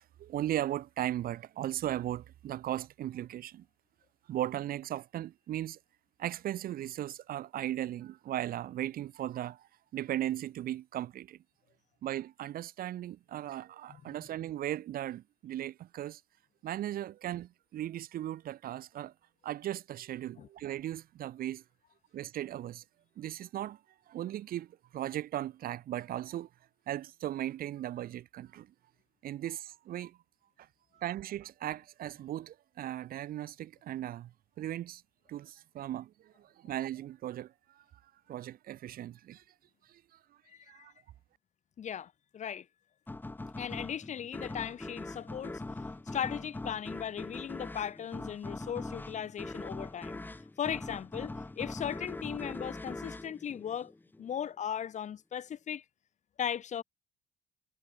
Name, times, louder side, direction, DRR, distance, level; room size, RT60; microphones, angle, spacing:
voice 1, 0.2-3.6 4.3-5.8 6.2-9.6 9.9-11.4 12.0-16.2 16.6-19.1 19.4-21.6 22.1-22.8 23.2-23.8 24.1-24.7 24.9-26.5 26.9-28.7 29.2-30.2 31.0-34.3 34.6-35.0 35.3-37.5 38.3-39.4 40.7-40.9, right 12 dB, 60° right, 1.1 m, -37 dB
voice 2, 40.5-40.9 41.8-42.7 43.6-50.2 50.6-53.9 54.2-55.8 56.4-56.8, left 9 dB, 45° left, 1.2 m, -37 dB
sound 1, 43.1-54.3, left 2 dB, 10° left, 1.6 m, -42 dB
cardioid pair, 110°, 17 cm